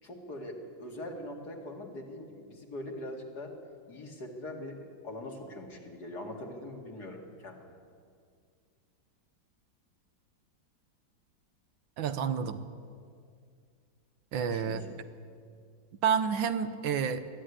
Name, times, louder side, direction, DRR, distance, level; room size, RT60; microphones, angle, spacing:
voice 1, 0.0-3.5 3.9-7.7 14.4-14.9, left 1 dB, 55° left, 1 dB, 2.8 m, -42 dB
voice 2, 12.0-12.6 14.3-14.8 16.0-17.2, right 7 dB, 80° right, 10 dB, 1.7 m, -29 dB
21.5 x 14.0 x 9.8 m, 2.2 s
omnidirectional pair, 2.1 m